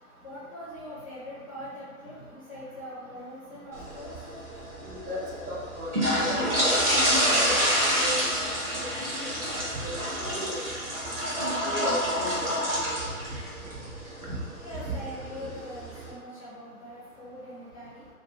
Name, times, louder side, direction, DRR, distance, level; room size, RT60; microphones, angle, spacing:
voice 1, 0.2-4.3 14.6-18.1, left 1 dB, 25° left, -8 dB, 0.5 m, -42 dB
sound 1, 3.7-16.1, equal, 50° right, 1.2 m, -28 dB
voice 2, 4.8-5.2 5.5-8.5 8.7-8.9 9.2-10.7 11.6-12.5 12.9-13.0 14.2-14.4 14.9-15.0, equal, 75° right, -6 dB, 1.2 m, -36 dB
2.7 x 2.5 x 3.4 m, 1.6 s
figure-of-eight pair, 135°, 45 cm